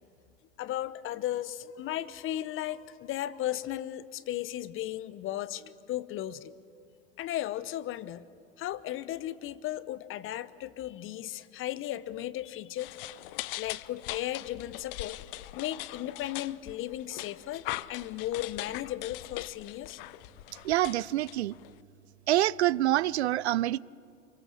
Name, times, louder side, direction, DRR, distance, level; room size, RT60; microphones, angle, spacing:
voice 1, 0.6-6.5 7.2-8.3 8.6-13.0 13.6-15.2 15.5-17.6 17.9-20.0, left 13 dB, 35° left, 1.1 m, -35 dB
sound 1, 12.8-21.8, left 18 dB, 55° left, 0.8 m, -41 dB
voice 2, 20.6-21.6 22.3-23.8, right 14 dB, 75° right, 0.6 m, -26 dB
27.0 x 23.5 x 7.3 m
hypercardioid pair, 90°, 34 cm